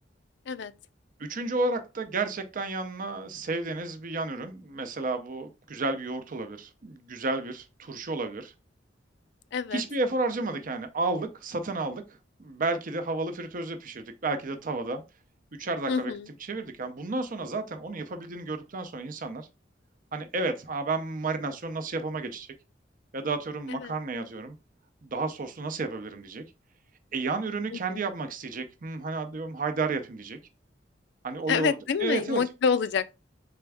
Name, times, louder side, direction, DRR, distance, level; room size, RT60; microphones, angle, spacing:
voice 1, 1.2-8.5 9.7-12.0 12.4-15.0 15.6-16.1 16.5-19.5 20.1-22.5 23.1-24.6 25.0-26.4 27.1-30.4 31.2-31.7 32.0-32.4, right 3 dB, 45° right, 0.6 m, -32 dB
voice 2, 9.5-9.8 15.9-16.3 23.7-23.9 27.7-28.1 31.5-33.1, left 6 dB, 65° left, 0.4 m, -28 dB
4.3 x 3.4 x 3.4 m
head